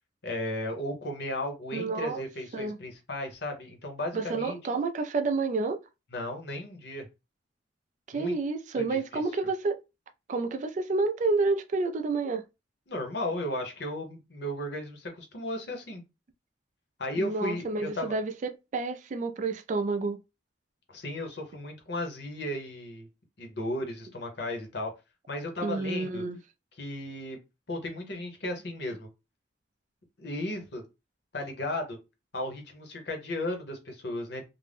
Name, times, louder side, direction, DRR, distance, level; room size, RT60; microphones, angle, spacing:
voice 1, 0.2-4.6 6.1-7.1 8.1-8.3 8.7-9.0 12.9-16.0 17.0-18.1 20.9-23.1 23.4-24.9 25.3-26.2 26.8-27.4 27.7-29.1 30.2-30.8 31.3-32.0 32.3-34.4, left 1 dB, 65° left, 0.8 m, -35 dB
voice 2, 1.7-2.2 2.5-2.8 4.1-5.8 8.1-9.8 10.3-12.4 17.2-20.2 25.6-26.4, right 3 dB, 40° right, 0.3 m, -29 dB
2.5 x 2.1 x 3.4 m
head